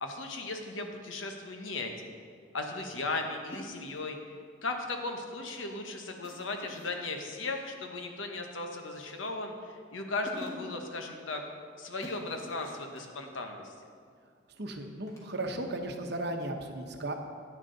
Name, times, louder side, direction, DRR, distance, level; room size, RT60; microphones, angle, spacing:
voice 1, 0.0-2.1 2.5-4.2 4.6-11.4 11.8-13.7, left 3 dB, 80° left, 4 dB, 1.1 m, -37 dB
sound 1, 3.5-4.1 6.2-7.0 8.8-9.4 9.9-10.0 10.3-10.9 12.0-13.0 15.1-15.3, equal, 15° left, 1.7 m, -47 dB
voice 2, 14.6-17.1, right 1 dB, 55° right, 4 dB, 0.9 m, -35 dB
10.0 x 9.9 x 4.0 m, 2.1 s
head